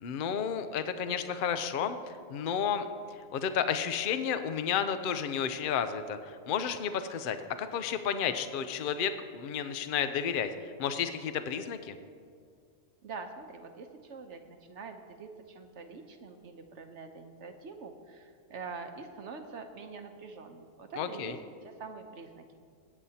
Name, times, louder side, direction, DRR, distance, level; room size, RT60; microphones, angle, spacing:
voice 1, 0.0-2.0 2.3-2.9 3.3-6.2 6.5-10.5 10.8-12.0 21.0-21.4, left 7 dB, 50° left, 10 dB, 0.7 m, -31 dB
voice 2, 13.0-22.4, right 4 dB, 60° right, 5 dB, 1.1 m, -45 dB
22.0 x 8.9 x 2.8 m, 2.2 s
omnidirectional pair, 1.4 m